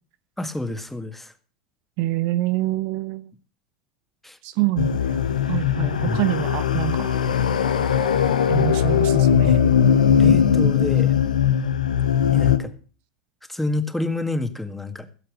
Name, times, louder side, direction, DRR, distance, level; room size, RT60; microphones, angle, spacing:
voice 1, 0.4-1.3 4.2-4.4 6.0-6.3 9.4-9.8 10.2-11.2 12.3-12.7 13.5-15.1, left 2 dB, 5° left, 9 dB, 1.8 m, -28 dB
voice 2, 2.0-3.3 4.4-5.2 5.5-7.2 8.5-9.5, right 16 dB, 55° right, 13 dB, 0.8 m, -26 dB
sound 1, 4.8-12.6, left 8 dB, 80° left, 1.2 m, -19 dB
16.0 x 7.8 x 6.5 m, 0.39 s
figure-of-eight pair, 80°, 4 cm